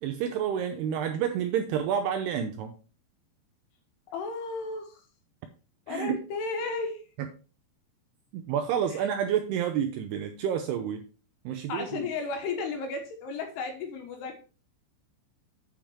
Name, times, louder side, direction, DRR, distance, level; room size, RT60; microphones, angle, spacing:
voice 1, 0.0-2.7 5.9-6.2 7.2-7.3 8.3-11.0 11.4-12.1, right 9 dB, 85° right, 6 dB, 2.3 m, -29 dB
voice 2, 4.1-5.0 5.9-7.0 8.9-9.1 11.7-14.4, left 4 dB, 70° left, 4 dB, 3.0 m, -34 dB
9.1 x 5.1 x 4.5 m, 0.36 s
omnidirectional pair, 5.5 m